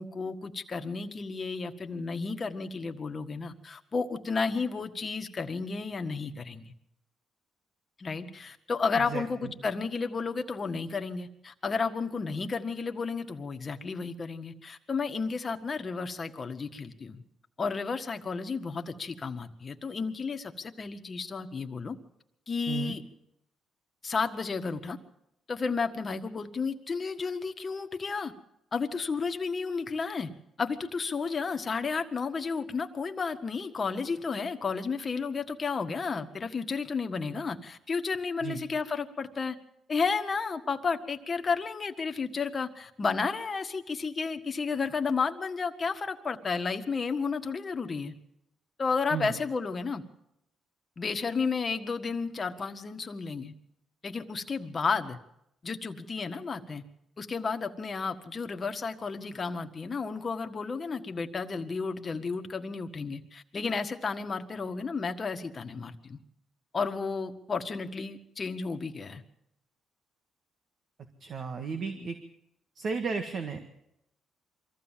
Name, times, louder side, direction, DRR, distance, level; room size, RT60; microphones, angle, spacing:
voice 1, 0.0-6.7 8.0-17.2 17.6-22.0 22.5-23.0 24.0-25.0 25.5-28.3 28.7-30.3 30.6-39.6 39.9-48.1 48.8-50.0 51.0-53.5 54.0-55.2 55.6-56.8 57.2-66.2 66.7-69.2 72.0-72.1, left 4 dB, 35° left, 7 dB, 1.6 m, -32 dB
voice 2, 8.9-9.5 22.7-22.9 38.4-38.6 49.1-49.4 71.2-72.2 72.8-73.6, right 5 dB, 55° right, 6 dB, 1.8 m, -34 dB
23.5 x 15.0 x 7.4 m, 0.83 s
cardioid pair, 90°, 0 cm